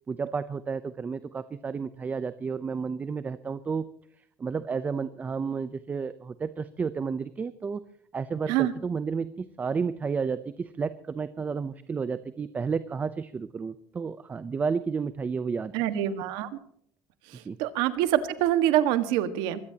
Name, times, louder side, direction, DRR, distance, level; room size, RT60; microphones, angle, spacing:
voice 1, 0.1-3.9 4.4-7.8 8.1-15.7 17.4-17.6, right 5 dB, 20° right, 14 dB, 0.6 m, -31 dB
voice 2, 15.7-16.5 17.3-19.6, right 12 dB, 80° right, 11 dB, 1.6 m, -25 dB
23.0 x 17.5 x 2.9 m, 0.64 s
cardioid pair, 135°, 7 cm